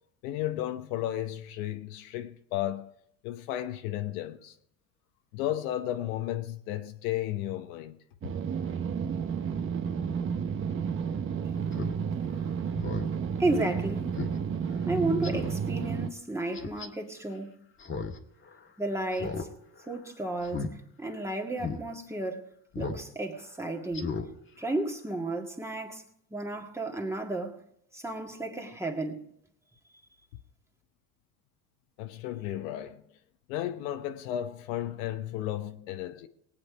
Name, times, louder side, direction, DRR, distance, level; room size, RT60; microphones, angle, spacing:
voice 1, 0.2-3.0 3.2-4.6 5.3-8.0 32.0-33.0 33.5-36.3, left 12 dB, 85° left, 1.0 m, -33 dB
sound 1, 8.2-16.1, right 6 dB, 30° right, 0.8 m, -31 dB
Speech synthesizer, 11.7-11.9 12.3-12.4 12.7-13.1 13.5-13.6 14.2-14.4 14.7-14.8 15.2-15.6 16.5-16.9 17.8-18.2 18.5-18.6 19.1-19.5 19.8-20.0 20.4-20.7 21.1-21.2 21.6-21.8 22.7-23.0 23.3-23.5 23.9-24.3 24.6-24.7, left 4 dB, 30° left, 1.6 m, -35 dB
voice 2, 13.4-14.1 14.9-17.5 18.8-19.5 19.9-20.7 21.0-22.5 22.8-24.2 24.6-26.0 26.3-27.6 27.9-29.3, right 2 dB, 5° right, 1.9 m, -32 dB
19.0 x 8.8 x 4.8 m
supercardioid pair, 115°, 40 cm